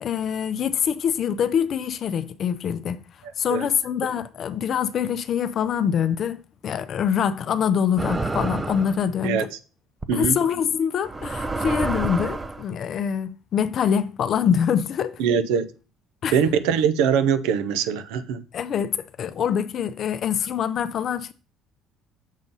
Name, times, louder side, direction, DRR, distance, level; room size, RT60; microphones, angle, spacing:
voice 1, 0.0-3.0 3.4-9.5 10.1-15.2 16.2-16.4 18.5-21.3, left 8 dB, 55° left, 0.5 m, -25 dB
sound 1, 8.0-9.0 10.0-10.3 11.0-12.6, right 3 dB, 20° right, 0.4 m, -28 dB
voice 2, 15.2-15.7 16.3-18.4, right 7 dB, 85° right, 0.6 m, -22 dB
7.2 x 2.6 x 5.4 m
supercardioid pair, 95°, 0 cm